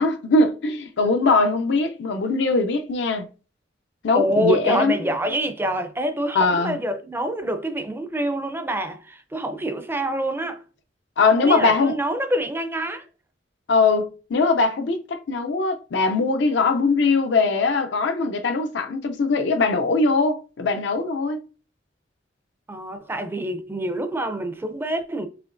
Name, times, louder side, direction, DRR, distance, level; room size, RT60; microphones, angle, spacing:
voice 1, 0.0-3.3 4.0-5.0 6.3-6.8 11.2-12.0 13.7-21.4, left 3 dB, 70° left, 0.5 m, -21 dB
voice 2, 4.1-10.6 11.4-13.1 22.7-25.3, right 1 dB, 10° right, 0.5 m, -26 dB
5.0 x 2.9 x 2.5 m
head